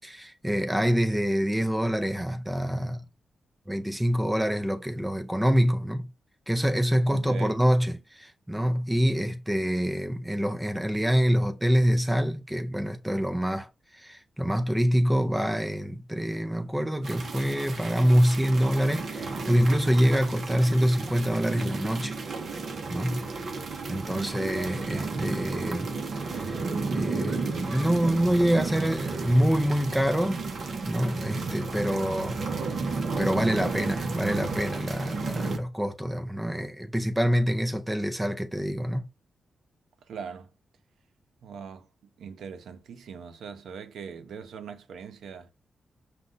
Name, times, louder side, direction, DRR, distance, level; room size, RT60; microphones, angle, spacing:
voice 1, 0.0-3.0 3.7-6.1 6.5-13.7 14.0-22.2 22.9-23.3 23.9-26.0 26.3-26.6 26.9-30.4 30.9-32.4 33.2-39.1, equal, 5° right, 0.5 m, -26 dB
voice 2, 7.1-7.6 23.9-24.4 31.7-32.1 40.0-40.5 41.4-41.9 42.2-45.5, right 6 dB, 85° right, 0.6 m, -41 dB
sound 1, 17.0-35.6, right 4 dB, 45° right, 0.7 m, -33 dB
5.2 x 2.2 x 3.7 m
wide cardioid pair, 175°, 0 cm